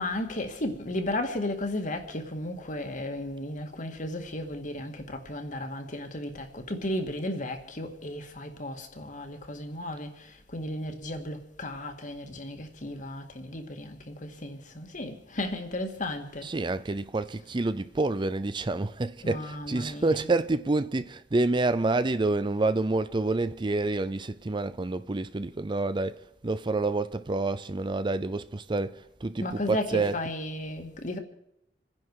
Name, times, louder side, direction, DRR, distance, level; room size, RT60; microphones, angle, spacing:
voice 1, 0.0-16.5 19.2-20.3 29.4-31.2, left 1 dB, 45° left, 2.0 m, -34 dB
voice 2, 16.4-30.3, right 2 dB, 25° right, 0.5 m, -28 dB
28.0 x 10.5 x 4.8 m
head